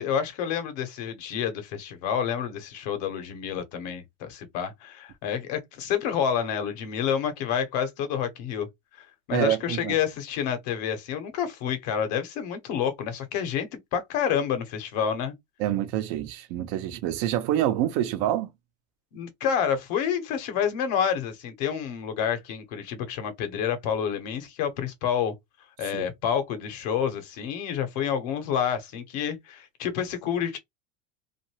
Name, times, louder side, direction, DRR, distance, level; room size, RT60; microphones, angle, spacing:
voice 1, 0.0-8.7 9.0-15.3 19.1-25.3 25.8-30.6, left 8 dB, 75° left, 1.0 m, -29 dB
voice 2, 9.3-9.9 15.6-18.5 25.9-26.1, right 12 dB, 70° right, 0.8 m, -26 dB
2.7 x 2.6 x 3.0 m
supercardioid pair, 115°, 21 cm